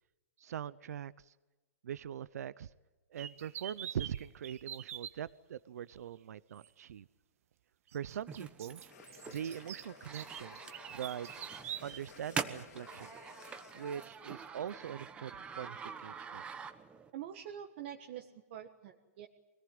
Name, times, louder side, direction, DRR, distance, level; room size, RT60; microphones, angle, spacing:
voice 1, 0.4-1.3 1.8-2.7 3.1-7.1 7.9-8.8 9.3-10.6 10.9-11.4 11.8-13.1 13.7-16.4, right 9 dB, 80° right, 18 dB, 0.7 m, -42 dB
sound 1, 3.2-5.1 6.6-6.7 7.9-12.0, right 10 dB, 65° right, 1.4 m, -45 dB
sound 2, 8.3-17.1, right 6 dB, 15° right, 1.1 m, -45 dB
sound 3, 8.9-14.1, left 6 dB, 85° left, 2.7 m, -56 dB
voice 2, 17.1-19.3, right 10 dB, 45° right, 3 dB, 1.6 m, -46 dB
24.5 x 18.5 x 9.5 m, 1.2 s
hypercardioid pair, 155°, 8 cm